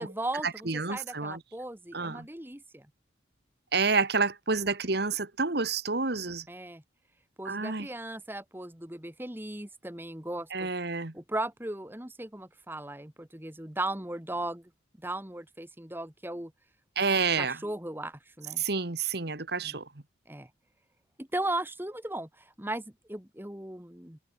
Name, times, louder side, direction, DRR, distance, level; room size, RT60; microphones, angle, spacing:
voice 1, 0.0-2.9 6.5-6.8 7.4-10.7 11.1-14.7 15.0-16.5 17.1-18.6 19.6-19.7 20.3-20.5 21.2-24.2, right 1 dB, 10° right, 1.6 m, -37 dB
voice 2, 0.7-1.4 1.9-2.3 3.7-6.4 7.4-7.9 10.5-11.1 16.9-17.6 18.6-19.8, right 4 dB, 55° right, 1.6 m, -29 dB
head